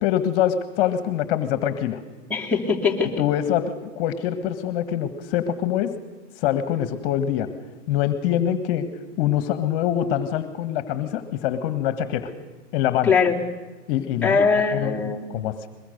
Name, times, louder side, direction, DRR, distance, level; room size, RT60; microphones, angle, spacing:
voice 1, 0.0-2.0 3.2-6.0 6.4-7.5 7.9-8.9 9.2-12.3 12.7-13.1 13.9-14.4 14.7-15.7, left 10 dB, 45° left, 11 dB, 1.7 m, -24 dB
voice 2, 2.3-3.2 13.0-13.4 14.2-15.4, left 5 dB, 5° left, -3 dB, 3.0 m, -21 dB
22.0 x 21.5 x 6.7 m, 1.3 s
hypercardioid pair, 130°, 38 cm